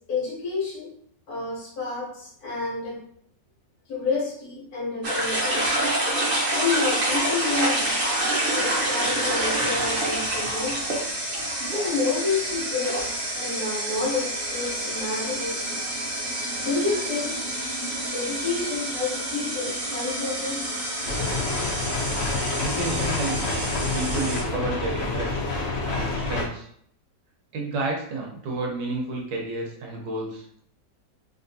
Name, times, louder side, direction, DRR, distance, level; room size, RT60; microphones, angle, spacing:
voice 1, 0.1-0.9 1.3-3.0 3.9-5.8 6.5-10.9 11.7-15.8 16.6-17.4 18.1-20.7 22.1-22.2, left 3 dB, 60° left, -3 dB, 1.4 m, -29 dB
sound 1, 5.0-24.4, right 1 dB, 45° right, 0.7 m, -28 dB
sound 2, 21.1-26.5, left 3 dB, 75° left, 0.5 m, -28 dB
voice 2, 22.5-23.6 23.9-25.4 25.8-26.7 27.5-30.5, right 2 dB, 80° right, -1 dB, 1.5 m, -31 dB
3.5 x 2.7 x 2.7 m, 0.66 s
omnidirectional pair, 2.0 m